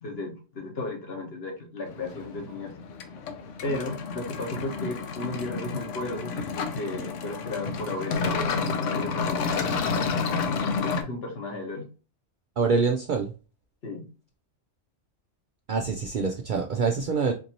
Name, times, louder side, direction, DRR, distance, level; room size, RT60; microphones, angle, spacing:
voice 1, 0.0-2.7 3.6-6.3 6.7-10.1 11.0-11.9 13.8-14.1, left 2 dB, 55° left, 1 dB, 1.3 m, -35 dB
sound 1, 1.9-11.0, left 5 dB, 80° left, 1.0 m, -30 dB
voice 2, 12.6-13.3 15.7-17.3, right 4 dB, 60° right, 2 dB, 0.5 m, -25 dB
4.4 x 2.6 x 2.8 m, 0.33 s
omnidirectional pair, 1.3 m